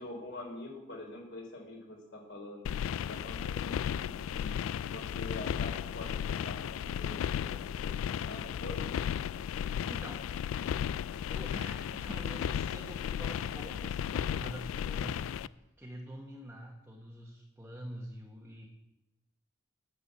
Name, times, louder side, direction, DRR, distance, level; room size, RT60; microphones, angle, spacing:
voice 1, 0.0-2.7 3.1-4.5 4.9-7.7 8.0-8.8, left 2 dB, 65° left, 0 dB, 4.1 m, -45 dB
sound 1, 2.6-15.5, left 8 dB, 90° left, 0.3 m, -35 dB
voice 2, 9.9-10.3 11.3-15.2 15.8-18.7, equal, 10° right, -2 dB, 1.3 m, -46 dB
9.8 x 7.0 x 7.9 m, 0.98 s
head